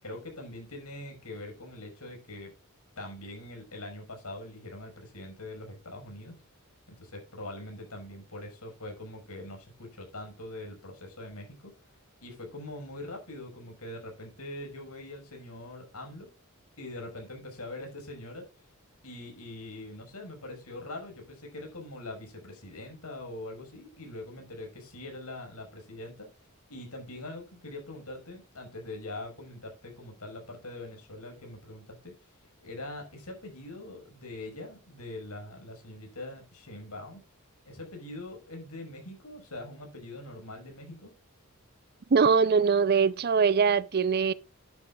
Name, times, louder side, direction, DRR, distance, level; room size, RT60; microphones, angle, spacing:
voice 1, 0.0-2.5 3.0-6.4 6.9-11.7 12.2-16.3 16.8-18.5 19.0-26.3 26.7-32.1 32.6-37.2 37.6-41.1, left 2 dB, 80° left, 6.0 m, -43 dB
voice 2, 42.1-44.3, right 5 dB, 45° right, 0.5 m, -22 dB
12.0 x 11.5 x 2.4 m
head